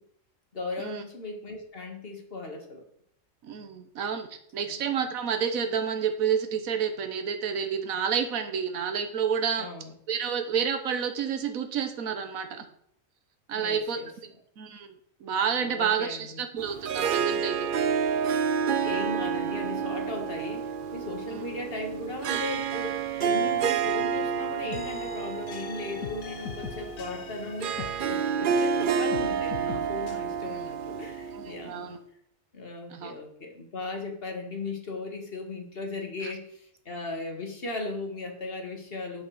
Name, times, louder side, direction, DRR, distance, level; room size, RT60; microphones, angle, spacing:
voice 1, 0.5-2.9 4.6-4.8 9.6-9.9 13.5-14.1 15.6-16.4 18.8-31.9 32.5-39.2, left 2 dB, 45° left, 4 dB, 1.9 m, -37 dB
voice 2, 3.4-9.7 10.1-12.6 13.5-14.0 14.6-14.9 15.2-17.7 21.3-21.4 31.3-32.0 32.9-33.1, right 7 dB, 85° right, 7 dB, 1.4 m, -29 dB
Harp, 16.6-31.8, right 6 dB, 60° right, 0.5 m, -29 dB
sound 1, 24.7-28.8 29.1-30.2, left 6 dB, 75° left, 1.4 m, -41 dB
8.4 x 7.1 x 6.4 m, 0.70 s
omnidirectional pair, 1.4 m